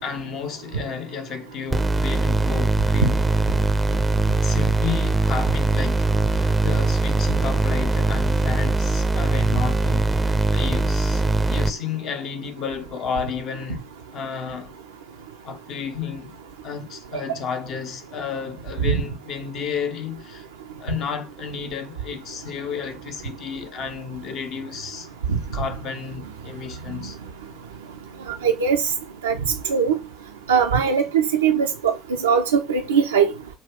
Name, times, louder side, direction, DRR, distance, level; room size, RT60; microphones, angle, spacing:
voice 1, 0.0-3.2 4.4-13.8 14.1-14.7 15.4-16.3 16.6-20.5 20.8-25.1 25.5-27.2, left 6 dB, 50° left, 0.8 m, -32 dB
sound 1, 1.7-11.7, right 2 dB, 15° right, 0.5 m, -21 dB
voice 2, 28.4-28.8 29.2-29.3 29.7-30.0 30.5-31.9 32.2-33.3, right 6 dB, 80° right, 0.4 m, -20 dB
5.2 x 2.3 x 3.4 m
figure-of-eight pair, 60°, 0 cm